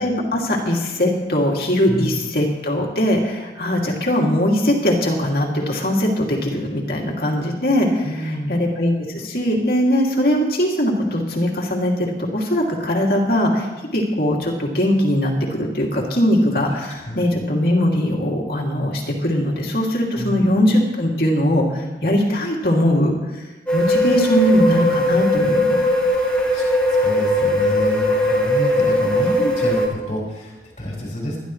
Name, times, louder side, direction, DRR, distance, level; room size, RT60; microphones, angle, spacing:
voice 1, 0.0-13.7 13.9-23.5 23.7-25.8, equal, 60° left, -2 dB, 2.7 m, -20 dB
voice 2, 1.9-2.2 8.0-8.6 16.7-17.3 20.2-20.5 26.1-31.4, equal, 40° left, -3 dB, 5.8 m, -29 dB
sound 1, 23.7-29.9, left 1 dB, 5° left, 1.9 m, -19 dB
21.5 x 12.0 x 3.2 m, 1.1 s
head